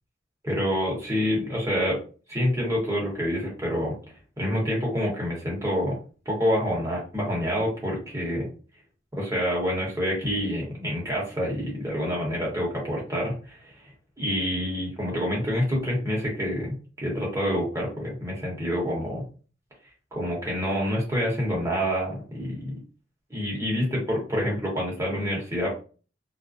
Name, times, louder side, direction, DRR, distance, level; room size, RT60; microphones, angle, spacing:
voice 1, 0.4-2.0 2.3-3.9 4.4-6.0 6.3-8.5 9.1-13.7 14.2-19.2 20.1-22.7 23.3-25.8, equal, 15° right, -3 dB, 0.9 m, -27 dB
2.4 x 2.1 x 2.5 m, 0.37 s
head